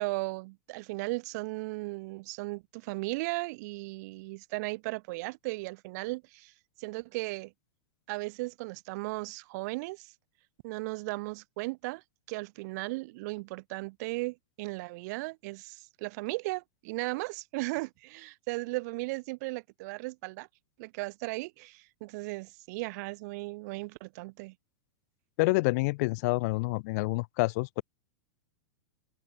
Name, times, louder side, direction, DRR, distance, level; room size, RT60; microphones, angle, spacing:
voice 1, 0.0-6.5 6.8-7.5 8.1-10.1 10.6-20.5 20.8-24.5, right 24 dB, 40° right, 0.9 m, -36 dB
voice 2, 25.4-27.8, left 25 dB, 40° left, 0.8 m, -28 dB
supercardioid pair, 165°, 14 cm